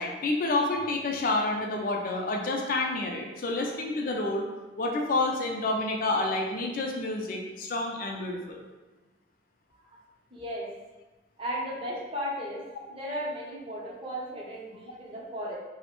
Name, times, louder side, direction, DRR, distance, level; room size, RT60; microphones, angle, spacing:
voice 1, 0.0-4.4 4.8-8.6, left 2 dB, 50° left, 1 dB, 0.4 m, -29 dB
voice 2, 10.3-10.7 11.4-12.6 12.9-15.6, equal, 30° right, -5 dB, 0.7 m, -35 dB
3.1 x 2.0 x 3.0 m, 1.1 s
head